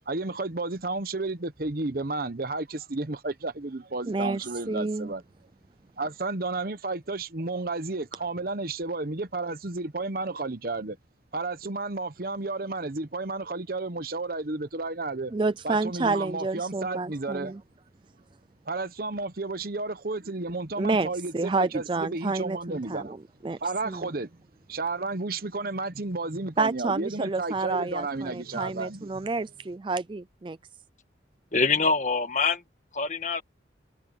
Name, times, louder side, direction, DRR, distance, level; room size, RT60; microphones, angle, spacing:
voice 1, 0.1-5.2 6.0-11.0 11.3-15.3 15.6-17.5 18.7-23.1 23.6-24.3 24.7-29.3, right 3 dB, 50° right, 0.9 m, -32 dB
voice 2, 4.1-5.1 15.3-17.6 20.8-23.6 23.8-24.1 26.6-30.6, right 3 dB, 25° right, 0.4 m, -29 dB
voice 3, 31.5-32.6 32.9-33.4, left 4 dB, 40° left, 1.7 m, -24 dB
head